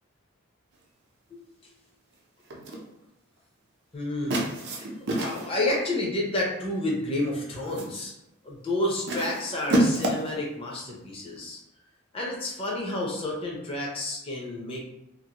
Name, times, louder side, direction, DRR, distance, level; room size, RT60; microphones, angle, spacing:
sound 1, 2.5-2.9 4.3-5.6 6.7-7.0 7.4-8.0 9.1-10.4, right 1 dB, 55° right, 0.6 m, -28 dB
voice 1, 3.9-4.4 4.7-4.9 5.2-8.1 8.4-11.6 12.1-14.8, left 1 dB, 25° left, -3 dB, 0.6 m, -30 dB
2.6 x 2.5 x 2.8 m, 0.85 s
head